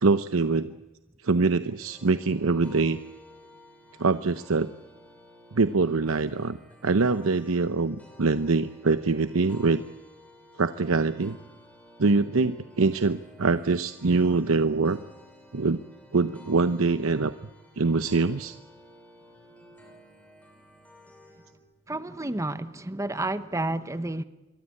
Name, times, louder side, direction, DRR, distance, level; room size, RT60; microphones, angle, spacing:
voice 1, 0.0-0.7 1.2-3.0 4.0-4.7 5.5-6.6 6.8-9.8 10.6-11.4 12.0-15.0 15.5-15.8 16.1-17.3 17.8-18.5, right 3 dB, 85° right, 11 dB, 0.8 m, -24 dB
sound 1, 1.8-21.5, left 1 dB, 5° left, 6.1 m, -53 dB
voice 2, 21.9-24.2, right 2 dB, 15° right, 12 dB, 1.0 m, -30 dB
26.5 x 23.0 x 8.5 m, 1.1 s
head